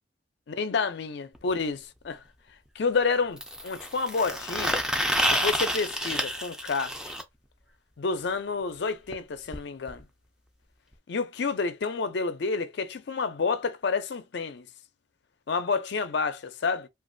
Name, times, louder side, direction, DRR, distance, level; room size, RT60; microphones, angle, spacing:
voice 1, 0.5-2.2 2.8-4.8 5.3-7.1 8.0-10.0 11.1-14.7 15.5-16.9, left 4 dB, 60° left, 0.4 m, -29 dB
sound 1, 1.4-1.5 3.4-7.2 9.1-9.2 9.5-9.6 9.9-10.0 10.9-11.0, equal, 5° right, 0.4 m, -29 dB
2.9 x 2.4 x 2.5 m
head